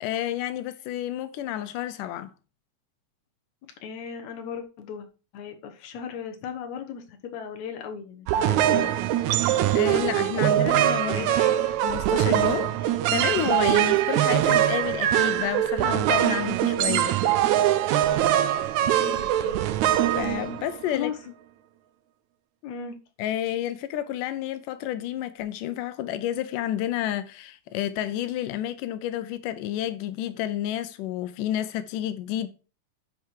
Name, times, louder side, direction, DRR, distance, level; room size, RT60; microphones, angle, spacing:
voice 1, 0.0-2.3 9.7-11.3 11.8-17.2 20.2-21.1 23.2-32.5, left 12 dB, 90° left, 2.3 m, -30 dB
voice 2, 3.8-5.1 5.3-9.0 11.1-11.5 18.0-19.6 20.9-21.2 22.6-23.0, left 7 dB, 65° left, 2.4 m, -37 dB
sound 1, 8.3-21.0, right 12 dB, 80° right, 1.9 m, -23 dB
11.5 x 4.8 x 4.6 m
omnidirectional pair, 3.6 m